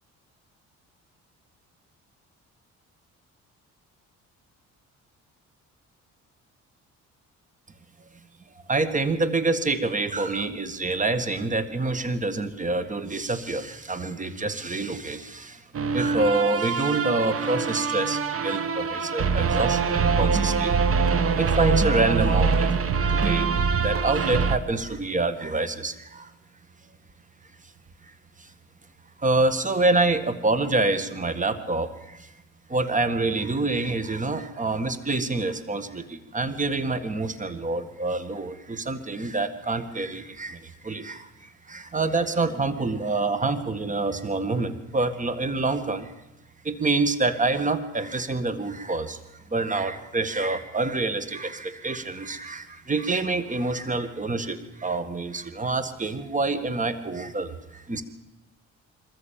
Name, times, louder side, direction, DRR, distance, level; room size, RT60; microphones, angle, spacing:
voice 1, 8.7-15.6 15.9-20.8 21.3-22.7 23.1-26.3 28.0-28.1 28.4-28.5 29.2-32.3 32.7-46.1 46.6-49.2 49.5-58.0, right 3 dB, 25° right, 11 dB, 1.9 m, -27 dB
sound 1, 15.7-24.6, right 5 dB, 50° right, 1.5 m, -24 dB
23.5 x 14.0 x 8.8 m, 0.99 s
cardioid pair, 90°, 30 cm